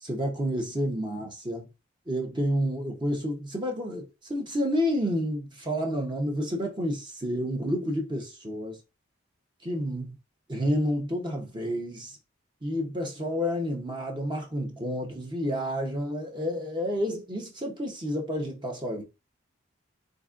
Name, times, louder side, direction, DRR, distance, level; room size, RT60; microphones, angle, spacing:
voice 1, 0.0-1.7 2.1-8.8 9.6-10.2 10.5-12.2 12.6-19.0, equal, 20° right, 0.8 m, -30 dB
3.8 x 3.7 x 2.4 m
head